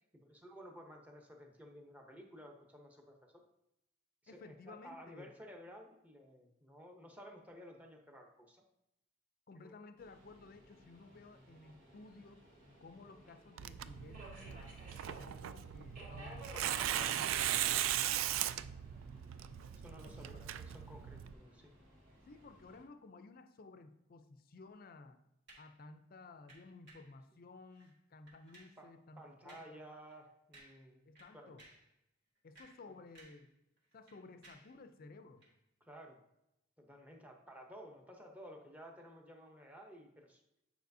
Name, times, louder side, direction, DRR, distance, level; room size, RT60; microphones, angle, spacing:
voice 1, 0.1-3.4 4.2-8.6 9.6-9.8 16.5-16.6 18.9-19.0 19.8-21.7 28.8-28.9 29.2-31.1 31.3-31.6 32.8-32.9 35.8-36.2 36.8-40.4, equal, 10° right, 1 dB, 0.8 m, -54 dB
voice 2, 4.3-5.3 9.5-12.4 12.8-14.8 15.2-17.6 20.0-20.5 22.3-25.2 25.6-29.8 31.1-31.6 32.4-33.5 33.9-35.4, left 3 dB, 45° left, 9 dB, 0.5 m, -55 dB
Subway metro underground, 10.0-22.8, right 1 dB, 40° right, 2.2 m, -56 dB
Tearing, 13.6-21.3, right 11 dB, 80° right, 0.3 m, -38 dB
sound 1, 25.5-25.8 26.5-27.2 27.7-27.9 28.3-28.8 29.5-29.8 30.1-30.2 30.5-30.9 31.2-31.9 32.4-33.5 33.8-34.8 35.4-35.5, right 2 dB, 60° right, 2.0 m, -61 dB
9.2 x 4.8 x 2.7 m, 0.85 s
head